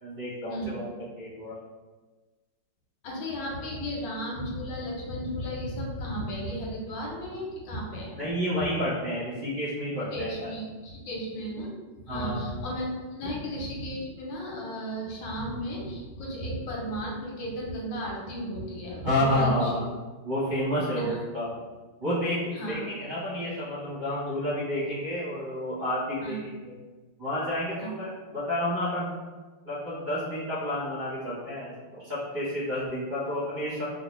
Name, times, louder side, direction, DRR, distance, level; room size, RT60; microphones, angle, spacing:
voice 1, 0.0-0.9 1.2-1.5 8.1-10.5 12.1-12.4 13.2-13.3 19.0-19.9 20.2-21.6 22.0-26.8 27.2-29.1 29.6-33.8, left 1 dB, 35° right, -11 dB, 0.9 m, -30 dB
voice 2, 3.0-8.2 10.1-11.7 12.0-19.7 20.9-21.2 22.5-22.8 26.2-26.4 27.8-27.9, equal, 85° left, -2 dB, 1.4 m, -34 dB
2.9 x 2.6 x 3.1 m, 1.3 s
omnidirectional pair, 2.0 m